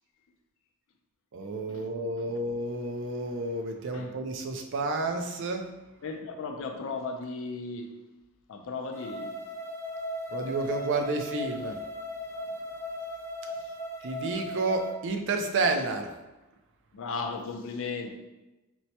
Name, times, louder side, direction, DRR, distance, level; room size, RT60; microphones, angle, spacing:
voice 1, 1.3-5.7 10.3-11.8 14.0-16.1, right 3 dB, 55° right, 5 dB, 0.4 m, -30 dB
voice 2, 6.0-7.9 8.5-9.4 13.5-13.7 16.9-18.2, left 4 dB, 60° left, 4 dB, 0.4 m, -36 dB
sound 1, 8.9-14.9, left 1 dB, 10° left, 0.7 m, -37 dB
4.4 x 2.1 x 2.8 m, 1.0 s
head